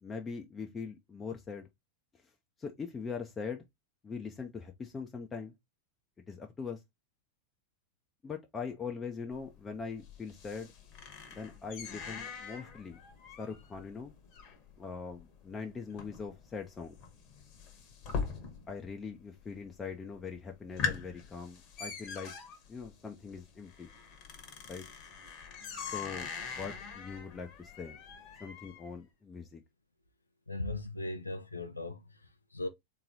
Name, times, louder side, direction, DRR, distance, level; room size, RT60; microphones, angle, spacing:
voice 1, 0.0-1.7 2.6-3.6 4.0-5.5 6.3-6.8 8.2-10.7 11.3-13.0 13.4-14.1 14.8-17.0 18.7-22.3 22.7-23.9 24.7-24.8 25.9-28.0 28.4-29.6, left 5 dB, 15° left, 0.7 m, -41 dB
sound 1, 9.3-18.9 19.1-19.7 20.1-20.2 20.6-28.9, left 6 dB, 40° left, 1.2 m, -42 dB
voice 2, 30.5-32.7, left 2 dB, 80° left, 0.5 m, -38 dB
3.8 x 3.0 x 3.8 m
figure-of-eight pair, 90°, 0 cm